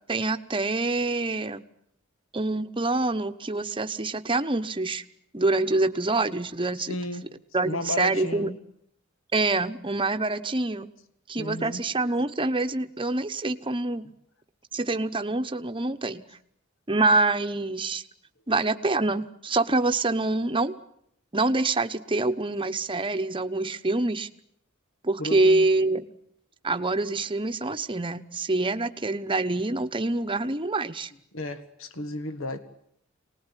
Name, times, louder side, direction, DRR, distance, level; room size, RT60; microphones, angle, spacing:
voice 1, 0.1-1.6 2.3-5.0 5.3-6.9 7.5-8.5 9.3-10.9 11.3-14.0 14.7-16.2 16.9-18.0 18.5-20.7 21.3-24.3 25.0-26.1 26.6-31.1, right 2 dB, 25° right, 1.1 m, -26 dB
voice 2, 6.8-7.3 7.6-8.6 11.4-11.8 15.8-15.9 25.2-25.7 31.3-32.6, left 1 dB, 70° left, 1.8 m, -33 dB
24.5 x 19.5 x 10.0 m
head